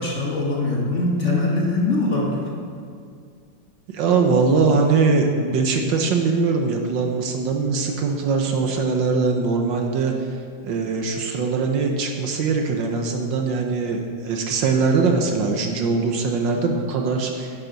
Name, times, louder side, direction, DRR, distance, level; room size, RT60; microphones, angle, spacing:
voice 1, 0.0-2.5, left 2 dB, 40° left, -2 dB, 1.6 m, -22 dB
voice 2, 3.9-10.1 10.6-17.5, right 4 dB, 70° right, 3 dB, 1.5 m, -21 dB
10.5 x 10.0 x 4.0 m, 2.2 s
omnidirectional pair, 2.2 m